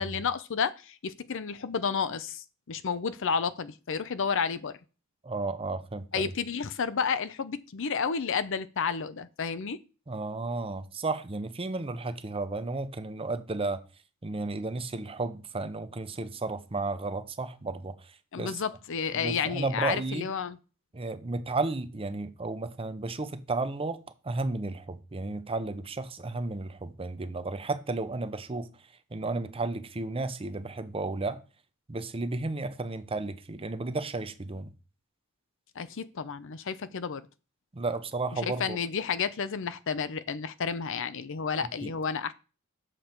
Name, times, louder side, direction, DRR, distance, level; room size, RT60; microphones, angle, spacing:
voice 1, 0.0-4.7 6.1-9.8 18.3-20.6 35.8-37.2 38.3-42.3, left 6 dB, 65° left, 0.6 m, -31 dB
voice 2, 5.2-6.3 10.1-13.8 14.2-18.6 19.1-20.3 20.9-28.7 29.1-31.4 31.9-34.7 37.7-38.8 41.8-41.9, right 3 dB, 25° right, 0.7 m, -33 dB
7.5 x 6.6 x 4.4 m
head